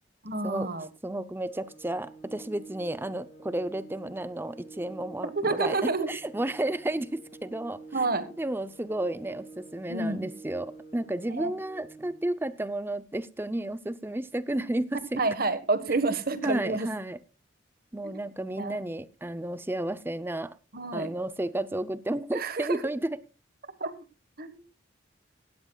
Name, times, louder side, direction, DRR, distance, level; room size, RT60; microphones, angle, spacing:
voice 1, 0.2-0.9 5.3-6.1 7.9-8.3 9.9-10.3 11.3-11.5 15.2-16.9 18.0-18.2 18.6-18.8 20.7-21.1 22.3-22.8 23.8-23.9 24.4-24.6, right 3 dB, 50° right, 12 dB, 1.5 m, -29 dB
voice 2, 1.0-7.8 8.4-15.2 16.4-17.2 17.9-20.5 20.9-23.2, right 1 dB, 10° right, 14 dB, 0.6 m, -32 dB
Organ, 1.5-12.5, right 3 dB, 45° left, 2.4 m, -49 dB
17.0 x 13.0 x 2.4 m, 0.31 s
head